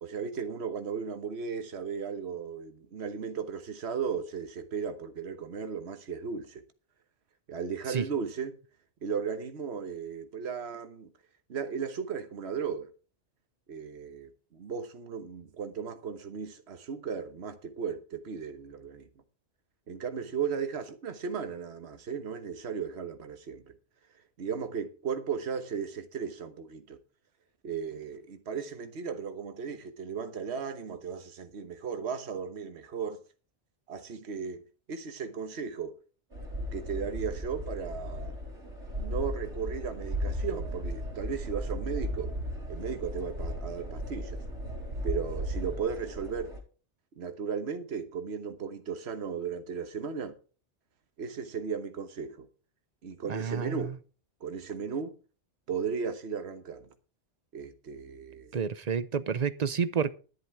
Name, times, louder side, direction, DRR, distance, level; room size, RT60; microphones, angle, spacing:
voice 1, 0.0-6.6 7.5-8.6 9.0-11.1 11.5-12.9 13.7-19.1 19.9-23.7 24.4-27.0 27.6-33.2 33.9-34.6 34.9-36.0 36.7-38.3 39.0-42.3 42.7-44.4 45.0-46.5 47.2-50.3 51.2-52.5 53.0-53.9 54.4-55.2 55.7-56.9 57.5-58.6, right 6 dB, 65° right, 1.4 m, -36 dB
sound 1, 36.3-46.6, equal, 90° right, 3.3 m, -36 dB
voice 2, 53.3-54.0 58.5-60.2, right 6 dB, 40° right, 0.7 m, -30 dB
11.0 x 10.5 x 4.7 m
omnidirectional pair, 1.2 m